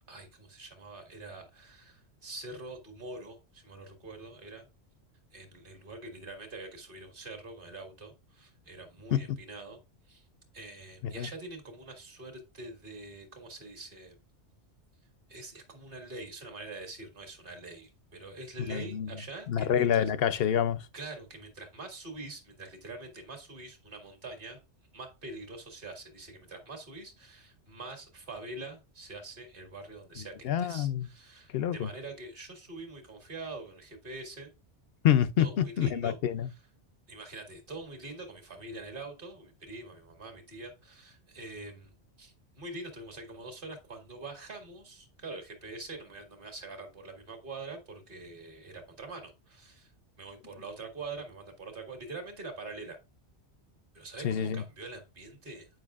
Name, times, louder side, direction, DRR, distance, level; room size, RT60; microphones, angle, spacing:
voice 1, 0.1-4.7 5.3-9.8 10.1-10.3 10.5-14.2 15.3-20.1 20.9-24.6 24.9-34.5 35.4-36.2 37.1-41.9 42.2-49.9 50.2-53.0 53.9-55.7, right 2 dB, 50° right, 1.8 m, -44 dB
voice 2, 18.7-19.1 19.5-20.9 30.4-31.1 31.5-31.9 35.0-36.5 54.2-54.6, left 9 dB, 65° left, 0.7 m, -27 dB
9.0 x 5.5 x 2.4 m
omnidirectional pair, 1.2 m